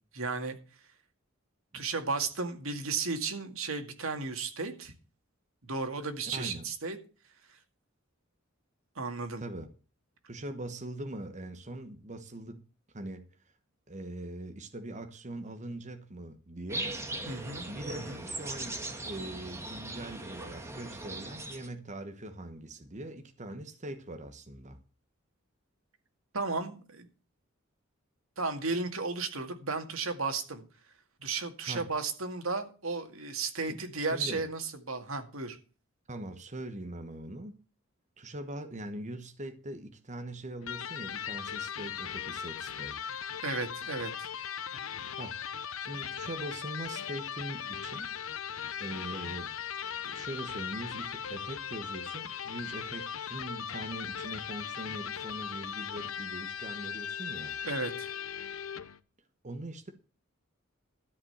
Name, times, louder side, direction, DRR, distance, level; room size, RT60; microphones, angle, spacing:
voice 1, 0.1-0.6 1.7-4.9 5.6-7.0 9.0-9.4 17.3-18.2 26.3-27.1 28.4-30.6 31.2-35.6 43.4-44.3 57.6-58.1, right 4 dB, 90° right, 2.1 m, -34 dB
voice 2, 6.3-6.7 9.4-9.7 10.3-12.6 12.9-13.3 13.9-17.0 17.7-18.8 19.1-24.8 31.7-31.9 33.7-34.5 36.1-37.6 38.2-43.1 45.2-45.4 45.8-48.1 48.8-49.5 50.0-57.6 59.4-59.9, right 1 dB, 35° right, 1.1 m, -42 dB
sound 1, 16.7-21.7, right 2 dB, 15° right, 1.7 m, -39 dB
Electric guitar, 40.6-59.0, left 8 dB, 85° left, 0.8 m, -38 dB
13.0 x 5.2 x 7.9 m
head